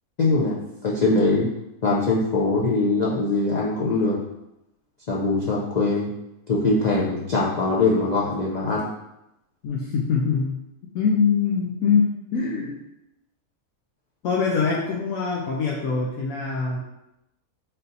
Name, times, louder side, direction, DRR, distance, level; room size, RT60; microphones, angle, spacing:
voice 1, 0.2-1.5 1.8-4.2 5.1-6.1 6.5-8.9, left 3 dB, 60° left, -5 dB, 0.4 m, -22 dB
voice 2, 9.6-10.6 10.9-12.8 14.2-16.8, left 5 dB, 85° left, -3 dB, 1.1 m, -23 dB
3.9 x 2.7 x 3.8 m, 0.88 s
omnidirectional pair, 1.4 m